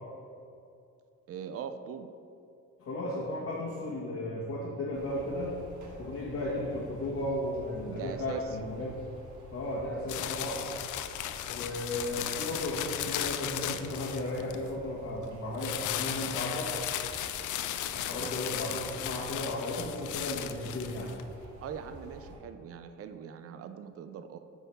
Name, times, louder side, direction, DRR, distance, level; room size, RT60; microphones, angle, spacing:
voice 1, 1.3-2.1 7.9-8.6 18.2-18.3 21.6-24.4, right 8 dB, 50° right, 9 dB, 0.5 m, -41 dB
voice 2, 2.8-5.5 6.0-8.9 9.5-10.7 11.5-16.7 17.9-21.1, left 1 dB, 55° left, -6 dB, 1.4 m, -35 dB
sound 1, 4.9-22.4, right 1 dB, 75° right, 1.6 m, -50 dB
sound 2, 10.1-14.7 15.6-21.2, left 11 dB, 80° left, 0.5 m, -36 dB
8.1 x 3.6 x 5.7 m, 2.6 s
cardioid pair, 90°, 30 cm